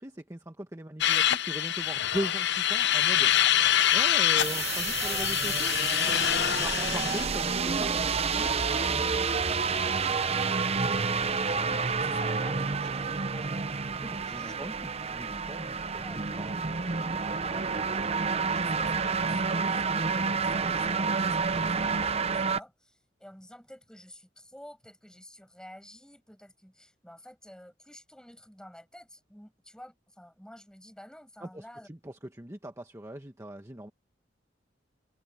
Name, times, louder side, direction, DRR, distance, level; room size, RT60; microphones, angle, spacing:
voice 1, 0.0-3.3 3.9-6.2 6.5-9.1 14.0-17.3 31.4-33.9, right 1 dB, 15° right, 1.3 m, -40 dB
sound 1, 1.0-7.3, left 11 dB, 65° left, 0.7 m, -25 dB
sound 2, 4.4-22.6, right 5 dB, 35° right, 0.7 m, -29 dB
voice 2, 5.0-5.3 6.6-6.9 11.5-13.6 14.2-14.6 16.0-16.2 17.4-31.9, equal, 5° left, 6.3 m, -50 dB
head